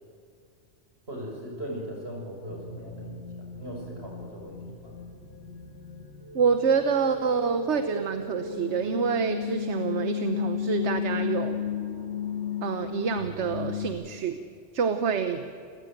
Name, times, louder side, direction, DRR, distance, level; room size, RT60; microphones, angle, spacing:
voice 1, 1.1-3.3 3.6-4.9, equal, 65° right, 0 dB, 6.5 m, -39 dB
sound 1, 2.5-13.9, left 6 dB, 70° left, 2.7 m, -34 dB
voice 2, 6.3-11.6 12.6-14.4 14.7-15.5, right 6 dB, 85° right, 8 dB, 1.4 m, -27 dB
29.5 x 16.0 x 9.1 m, 2.4 s
omnidirectional pair, 1.1 m